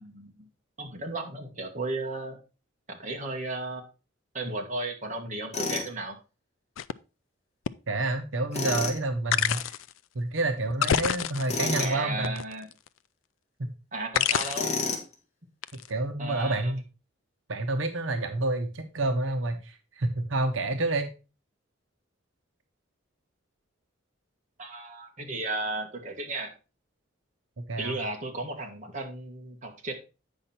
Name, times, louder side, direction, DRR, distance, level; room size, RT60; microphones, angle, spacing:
voice 1, 0.0-0.3 0.8-2.4 2.9-3.8 4.3-6.2 9.5-9.6 11.6-12.7 13.9-14.8 16.2-16.7 24.6-26.5 27.8-29.9, right 2 dB, 40° right, 1 dB, 1.6 m, -34 dB
Tools, 5.5-5.9 8.5-9.0 11.5-12.0 14.5-15.1, left 4 dB, 35° left, 1.5 m, -30 dB
sound 1, 6.8-6.9 7.7-7.8 9.3-9.9 10.7-11.7 12.2-12.9 14.1-14.8 15.6-15.9, left 9 dB, 85° left, 0.4 m, -27 dB
voice 2, 7.9-9.6 10.1-12.3 13.6-13.7 15.9-16.8 17.5-21.1 27.6-28.0, right 2 dB, 80° right, 6 dB, 1.0 m, -29 dB
8.5 x 5.6 x 4.3 m, 0.32 s
head